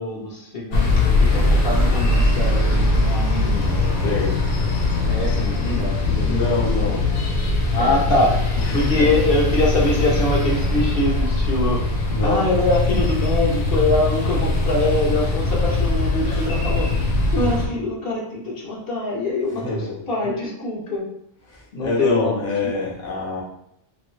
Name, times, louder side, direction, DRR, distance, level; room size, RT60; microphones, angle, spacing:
voice 1, 0.0-4.3 5.1-6.9 7.7-8.3 8.7-21.0 21.7-22.4, left 2 dB, 50° left, -3 dB, 0.9 m, -24 dB
sound 1, 0.7-17.7, left 2 dB, 80° left, 1.2 m, -21 dB
voice 2, 4.0-4.3 6.2-7.1 7.8-8.2 8.6-9.1 12.1-12.5 19.6-19.9 21.5-23.4, left 3 dB, 25° left, -5 dB, 0.3 m, -25 dB
3.0 x 2.7 x 3.0 m, 0.75 s
omnidirectional pair, 1.4 m